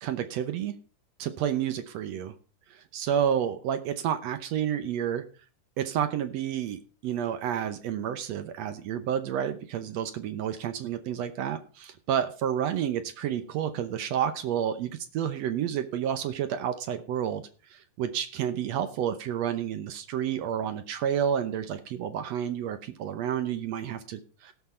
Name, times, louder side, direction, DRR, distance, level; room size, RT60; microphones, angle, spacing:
voice 1, 0.0-0.7 1.2-2.3 2.7-5.2 5.8-17.4 17.7-24.5, right 9 dB, 70° right, 9 dB, 1.7 m, -30 dB
17.5 x 5.9 x 4.4 m, 0.36 s
omnidirectional pair, 3.8 m